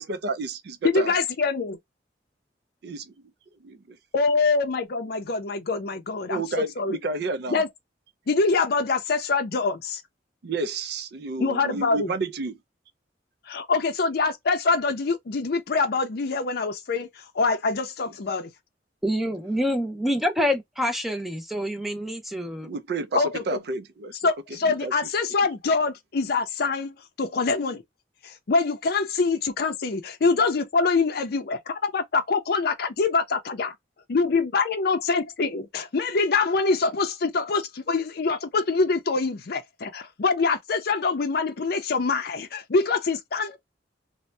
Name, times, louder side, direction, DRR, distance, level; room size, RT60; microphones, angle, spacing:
voice 1, 0.0-1.1 2.8-3.0 3.6-3.8 6.3-7.6 10.4-12.6 22.6-24.1 24.7-24.9, right 3 dB, 60° right, 0.4 m, -30 dB
voice 2, 0.8-1.8 4.1-7.0 7.5-7.7 8.3-10.0 11.4-12.1 13.5-17.1 17.3-18.5 23.1-23.6 24.2-27.8 28.2-33.7 34.1-43.6, left 4 dB, 60° left, 0.5 m, -25 dB
voice 3, 19.0-22.7, equal, ahead, 0.5 m, -26 dB
2.6 x 2.1 x 3.1 m
head